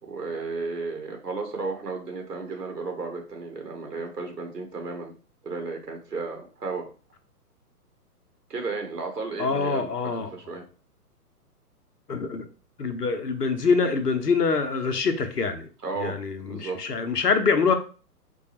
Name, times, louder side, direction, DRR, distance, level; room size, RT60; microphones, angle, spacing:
voice 1, 0.0-5.1 5.4-6.9 8.5-10.6 15.8-16.2 16.5-17.2, right 4 dB, 85° right, 3 dB, 1.1 m, -34 dB
voice 2, 9.4-10.3 12.1-12.5 12.8-15.7 16.0-17.7, left 4 dB, 80° left, 8 dB, 0.8 m, -25 dB
4.6 x 2.3 x 2.9 m, 0.37 s
figure-of-eight pair, 125°, 47 cm